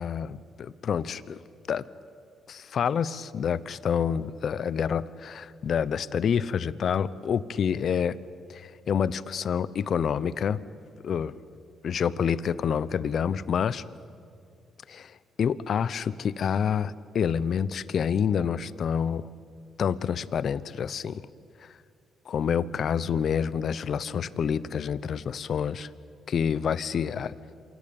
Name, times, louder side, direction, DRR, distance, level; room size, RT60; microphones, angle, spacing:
voice 1, 0.0-1.4 1.7-1.8 2.5-8.2 8.5-10.6 11.0-11.3 11.8-13.8 14.9-19.3 19.8-21.2 21.6-21.7 22.3-25.9 26.3-27.3, left 7 dB, 55° left, 17 dB, 0.8 m, -28 dB
26.5 x 17.5 x 8.8 m, 2.3 s
cardioid pair, 90°, 0 cm